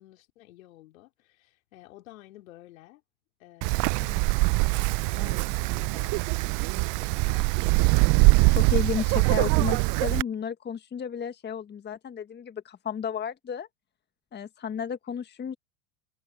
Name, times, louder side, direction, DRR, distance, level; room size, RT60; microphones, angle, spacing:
voice 1, 0.0-3.0 3.4-4.6 5.0-6.6 7.0-8.0, left 16 dB, 65° left, 4.2 m, -51 dB
Wind, 3.6-10.2, right 29 dB, 45° right, 0.7 m, -23 dB
voice 2, 8.5-13.7 14.3-15.5, left 7 dB, 25° left, 1.7 m, -33 dB
hypercardioid pair, 85°, 43 cm